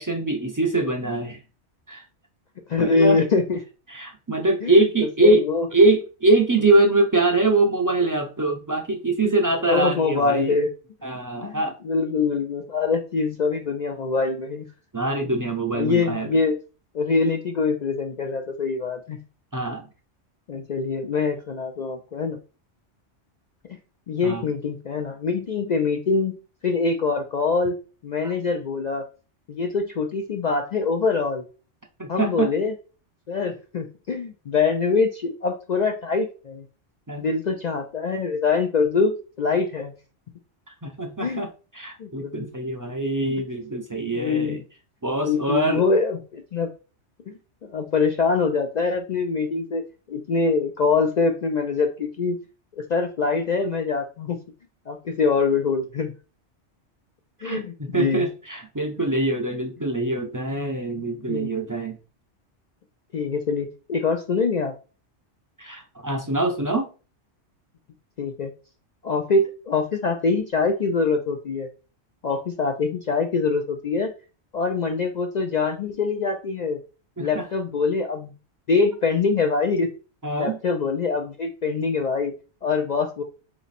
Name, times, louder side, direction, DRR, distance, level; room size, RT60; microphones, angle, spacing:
voice 1, 0.0-1.4 1.9-2.0 2.8-3.2 3.9-5.4 5.7-10.5 11.0-11.8 14.9-16.3 19.5-19.8 24.2-24.4 28.2-28.3 32.0-32.5 37.1-37.3 40.8-41.5 41.7-44.6 45.0-45.8 57.4-62.0 65.6-66.9 77.2-77.4 80.2-80.6, right 2 dB, 30° right, 3 dB, 0.4 m, -23 dB
voice 2, 2.7-3.6 4.6-4.8 5.2-5.7 9.2-9.3 9.6-10.7 11.4-14.7 15.7-16.6 16.9-19.2 20.5-22.4 23.7-23.8 24.1-26.3 26.6-27.7 28.0-29.1 29.5-31.4 32.1-32.7 33.3-36.7 37.2-39.9 41.2-41.5 42.0-42.5 44.0-44.6 45.2-46.7 47.6-52.4 52.7-54.4 54.9-56.1 57.4-58.2 61.0-61.5 63.1-64.7 68.2-68.5 69.0-71.7 72.2-74.1 74.5-76.8 77.2-78.3 78.7-79.9 80.4-82.3 82.6-83.2, left 4 dB, 65° left, 4 dB, 0.4 m, -24 dB
4.0 x 3.1 x 4.1 m, 0.34 s
omnidirectional pair, 1.2 m